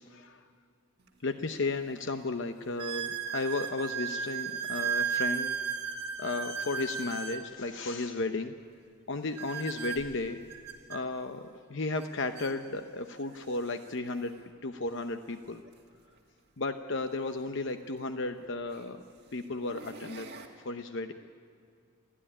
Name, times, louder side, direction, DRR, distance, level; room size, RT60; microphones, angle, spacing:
sound 1, 1.1-1.2 1.8-1.9 2.8-7.4 9.4-11.0 12.0-12.1 12.4-12.5 13.3-13.4 15.6-15.7 17.8-17.9 18.7-19.0 19.5-20.5, right 7 dB, 45° right, 2.2 m, -35 dB
voice 1, 1.2-5.6 6.2-8.5 9.1-10.4 10.9-14.4 14.6-15.6 16.6-19.0 19.3-20.3 20.6-21.1, left 3 dB, 55° left, 8 dB, 0.8 m, -34 dB
29.0 x 12.5 x 10.0 m, 2.3 s
head